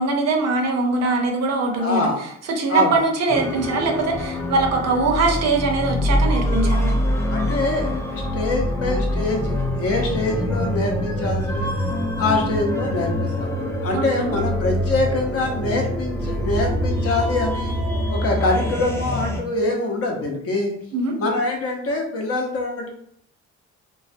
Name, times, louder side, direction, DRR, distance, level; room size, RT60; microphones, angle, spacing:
voice 1, 0.0-2.1 2.5-6.9 13.9-14.4 20.9-21.1, right 3 dB, 60° right, 2 dB, 0.6 m, -22 dB
voice 2, 1.7-2.2 2.7-3.0 7.3-11.7 12.2-13.5 13.8-17.7 18.1-20.7 21.2-22.9, left 2 dB, 50° left, 1 dB, 0.7 m, -24 dB
sound 1, 3.3-19.4, left 1 dB, 10° left, 0.3 m, -24 dB
2.3 x 2.2 x 2.5 m, 0.69 s
cardioid pair, 90°, 30 cm